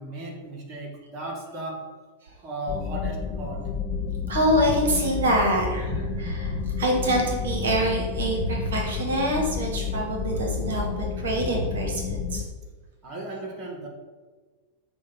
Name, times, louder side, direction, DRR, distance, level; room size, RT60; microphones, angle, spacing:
voice 1, 0.0-1.9 2.4-3.7 13.0-13.9, right 1 dB, 30° right, 0 dB, 0.8 m, -35 dB
sound 1, 2.7-12.4, left 6 dB, 40° left, 0.3 m, -30 dB
voice 2, 4.3-12.4, right 1 dB, 60° right, 0 dB, 0.8 m, -25 dB
6.0 x 2.0 x 4.0 m, 1.4 s
figure-of-eight pair, 90°, 0 cm